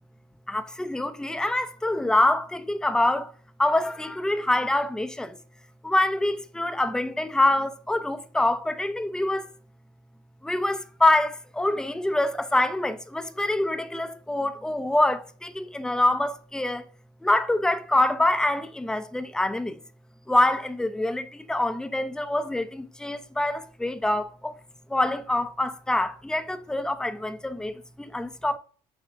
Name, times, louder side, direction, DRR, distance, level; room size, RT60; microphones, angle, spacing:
voice 1, 0.5-3.3 3.6-5.4 5.8-9.5 10.4-16.8 17.2-19.8 20.3-24.5 24.9-28.6, left 1 dB, 5° left, 0.5 m, -25 dB
6.8 x 2.7 x 5.4 m
cardioid pair, 110°, 17 cm